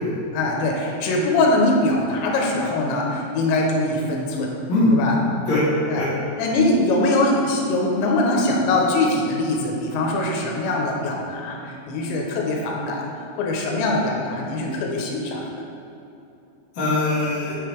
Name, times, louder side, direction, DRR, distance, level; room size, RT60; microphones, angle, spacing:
voice 1, 0.3-4.5 4.9-5.2 5.9-6.1 6.4-13.1 13.4-15.4, left 2 dB, 85° left, -1 dB, 3.3 m, -22 dB
voice 2, 4.7-5.6 5.9-6.1 16.7-17.6, left 2 dB, 45° left, -10 dB, 1.7 m, -21 dB
9.7 x 7.5 x 3.4 m, 2.7 s
omnidirectional pair, 5.1 m